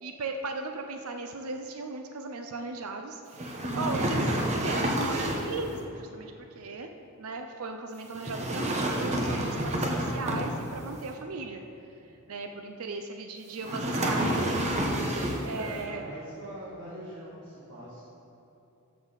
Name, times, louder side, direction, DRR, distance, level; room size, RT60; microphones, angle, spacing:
voice 1, 0.0-6.9 7.2-11.6 12.3-14.5 15.4-16.0, right 3 dB, 75° right, 5 dB, 0.6 m, -37 dB
sound 1, 3.3-5.6 8.1-10.9 13.6-15.6, right 1 dB, 30° right, 1.0 m, -29 dB
voice 2, 15.5-18.0, equal, 55° right, -8 dB, 1.9 m, -42 dB
13.5 x 6.9 x 4.0 m, 2.9 s
head